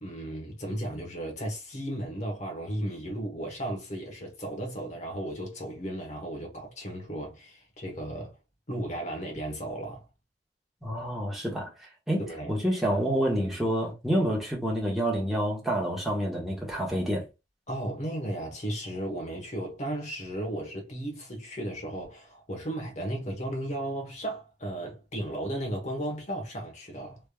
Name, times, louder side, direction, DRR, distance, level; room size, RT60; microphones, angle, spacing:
voice 1, 0.0-8.4 8.7-10.1 12.2-12.6 17.7-27.2, right 1 dB, 40° left, 1.2 m, -35 dB
voice 2, 10.8-17.3, equal, ahead, 1.2 m, -28 dB
3.4 x 3.1 x 2.3 m
head